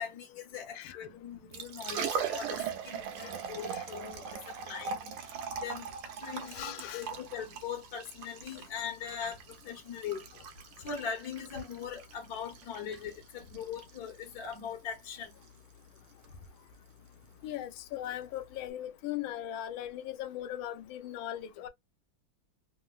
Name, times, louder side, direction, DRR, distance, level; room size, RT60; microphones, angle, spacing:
voice 1, 0.0-2.6 2.8-4.3 4.7-5.1 5.6-5.9 6.2-9.4 9.6-10.2 10.8-15.3, left 7 dB, 60° left, 1.0 m, -40 dB
voice 2, 0.7-1.1 3.2-3.4 3.7-3.8 6.4-7.1 17.4-21.7, left 12 dB, 75° left, 1.3 m, -39 dB
Liquid, 1.3-18.7, right 6 dB, 80° right, 1.5 m, -41 dB
3.8 x 2.0 x 2.2 m
omnidirectional pair, 2.4 m